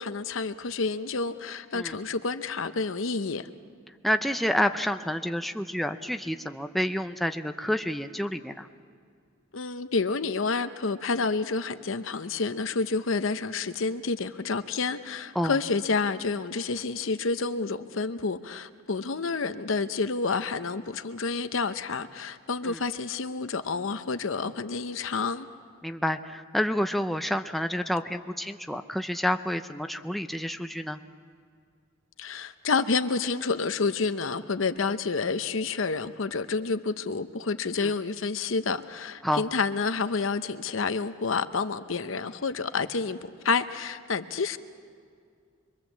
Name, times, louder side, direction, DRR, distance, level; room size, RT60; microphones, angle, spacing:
voice 1, 0.0-3.5 9.5-25.5 32.2-44.6, left 4 dB, 75° left, 0.8 m, -29 dB
voice 2, 4.0-8.7 15.4-15.6 22.6-22.8 25.8-31.0 37.8-37.9 39.2-39.4, equal, ahead, 0.6 m, -29 dB
26.0 x 22.5 x 7.4 m
head